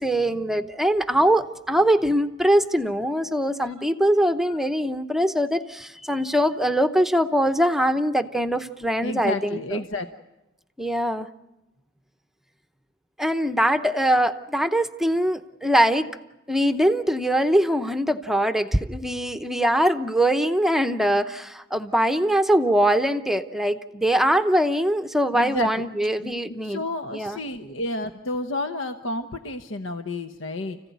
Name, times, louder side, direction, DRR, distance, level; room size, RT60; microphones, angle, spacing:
voice 1, 0.0-9.8 10.8-11.3 13.2-16.1 16.5-26.8 27.1-27.4, equal, ahead, 9 dB, 0.8 m, -22 dB
voice 2, 9.0-10.1 25.3-25.8 26.2-26.4 26.6-30.8, left 1 dB, 75° left, 7 dB, 1.1 m, -30 dB
30.0 x 15.5 x 9.4 m, 0.99 s
head